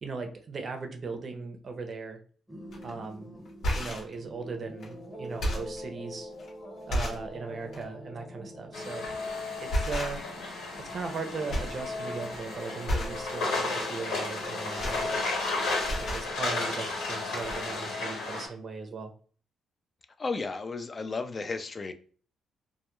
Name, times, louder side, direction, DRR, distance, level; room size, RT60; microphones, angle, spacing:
voice 1, 0.0-2.2 2.8-3.3 3.7-6.3 6.9-9.1 9.6-10.2 10.8-15.3 16.1-19.1, right 4 dB, 45° right, 5 dB, 0.5 m, -38 dB
sound 1, 2.5-16.0, equal, 5° left, 0.9 m, -45 dB
sound 2, 2.7-2.9 3.5-4.1 4.8-4.9 5.2-5.8 6.4-6.5 6.9-7.3 7.7-7.9 9.0-9.3 9.7-10.4 10.7-11.2 11.5-11.8 12.1-12.4 12.8-13.2 14.4-15.5 15.8-16.3 17.1-17.2 17.4-17.6, equal, 70° left, 0.9 m, -32 dB
sound 3, 8.7-18.5, left 3 dB, 85° left, 1.2 m, -33 dB
voice 2, 20.2-21.9, left 3 dB, 35° left, 9 dB, 0.3 m, -33 dB
2.1 x 2.1 x 3.0 m, 0.42 s
cardioid pair, 90°, 0 cm